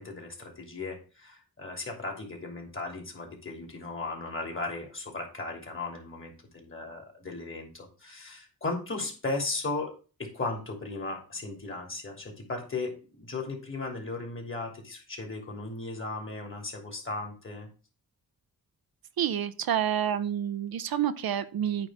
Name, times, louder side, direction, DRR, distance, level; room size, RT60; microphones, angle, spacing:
voice 1, 0.0-9.9 10.2-17.7, left 3 dB, 35° left, 1 dB, 2.9 m, -36 dB
voice 2, 19.2-21.9, right 10 dB, 70° right, 12 dB, 0.6 m, -28 dB
8.9 x 3.2 x 6.1 m, 0.36 s
cardioid pair, 75°, 37 cm